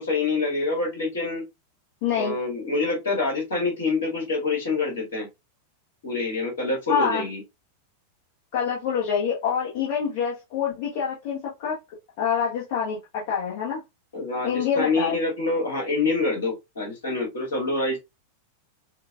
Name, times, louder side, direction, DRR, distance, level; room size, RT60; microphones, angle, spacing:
voice 1, 0.0-1.4 2.1-5.3 6.0-7.4 14.1-18.0, left 3 dB, 65° left, 2.3 m, -26 dB
voice 2, 2.0-2.3 6.9-7.3 8.5-11.8 12.2-13.8 14.4-15.2, left 7 dB, 45° left, 1.3 m, -26 dB
6.4 x 2.4 x 2.5 m
figure-of-eight pair, 90°, 0 cm